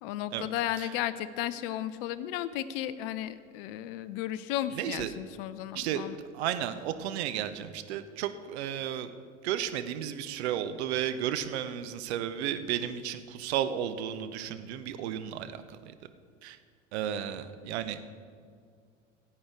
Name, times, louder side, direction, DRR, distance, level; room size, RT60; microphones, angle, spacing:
voice 1, 0.0-6.2, left 12 dB, 50° left, 13 dB, 0.5 m, -34 dB
voice 2, 4.7-5.1 5.7-6.0 6.3-9.1 9.4-15.9 16.4-16.6 16.9-18.1, right 10 dB, 60° right, 11 dB, 0.8 m, -33 dB
16.5 x 8.6 x 3.6 m, 2.2 s
figure-of-eight pair, 75°, 37 cm